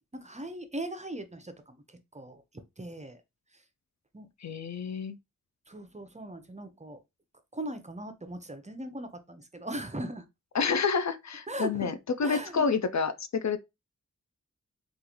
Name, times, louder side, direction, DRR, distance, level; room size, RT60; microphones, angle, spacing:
voice 1, 0.1-2.4 2.8-3.2 4.1-4.3 5.7-7.0 7.5-10.3 11.5-12.0 12.2-12.7, right 1 dB, 25° right, 0.6 m, -39 dB
voice 2, 4.4-5.2 10.5-13.6, left 5 dB, 60° left, 0.4 m, -29 dB
3.7 x 2.4 x 2.9 m
wide cardioid pair, 50°, 31 cm